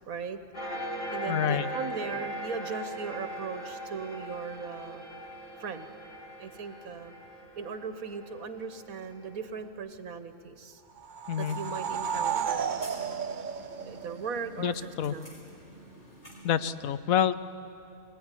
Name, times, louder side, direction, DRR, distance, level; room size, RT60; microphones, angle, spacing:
voice 1, 0.1-0.4 1.1-5.0 5.6-5.9 6.4-7.1 7.6-10.8 11.4-12.7 13.8-15.4, right 5 dB, 80° right, 10 dB, 1.6 m, -38 dB
sound 1, 0.5-9.5, equal, 60° left, 3.3 m, -39 dB
voice 2, 1.3-1.7 11.3-11.6 14.6-15.1 16.4-17.4, left 9 dB, 75° left, 14 dB, 1.2 m, -27 dB
sound 2, 11.0-14.5, right 7 dB, 45° right, 0.7 m, -33 dB
sound 3, 11.4-16.7, right 1 dB, 40° left, 4.7 m, -50 dB
22.0 x 18.5 x 10.0 m, 2.8 s
omnidirectional pair, 1.5 m